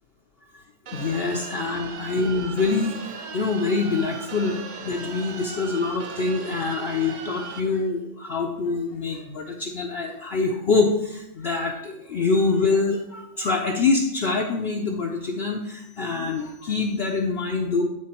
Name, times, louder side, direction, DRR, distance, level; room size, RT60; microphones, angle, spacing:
sound 1, 0.8-7.6, right 5 dB, 65° right, 0.4 m, -38 dB
voice 1, 0.9-3.0 3.3-4.6 4.8-17.8, left 4 dB, 55° left, 0 dB, 0.8 m, -25 dB
9.4 x 4.1 x 4.3 m, 0.88 s
omnidirectional pair, 1.5 m